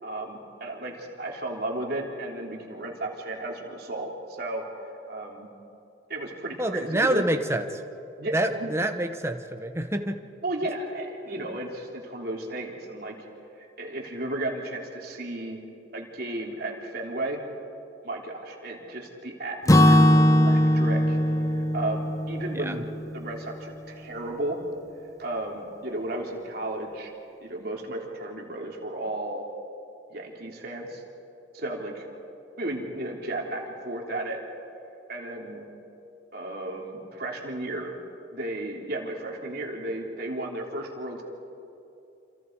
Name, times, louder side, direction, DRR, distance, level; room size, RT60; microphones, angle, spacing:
voice 1, 0.0-4.6 5.1-5.5 6.1-7.2 8.2-8.7 10.4-13.1 13.8-15.6 15.9-17.4 18.0-21.2 21.5-24.6 25.2-27.1 27.4-29.5 30.1-31.0 31.5-32.1 32.6-34.4 35.1-35.7 36.3-37.9 38.3-41.2, right 1 dB, 55° right, 0 dB, 3.2 m, -34 dB
voice 2, 6.6-7.8 8.3-10.2 22.5-22.8, right 1 dB, 15° right, 6 dB, 1.0 m, -27 dB
Acoustic guitar / Strum, 19.7-23.6, left 1 dB, 15° left, 0.6 m, -20 dB
28.0 x 27.5 x 4.7 m, 2.7 s
head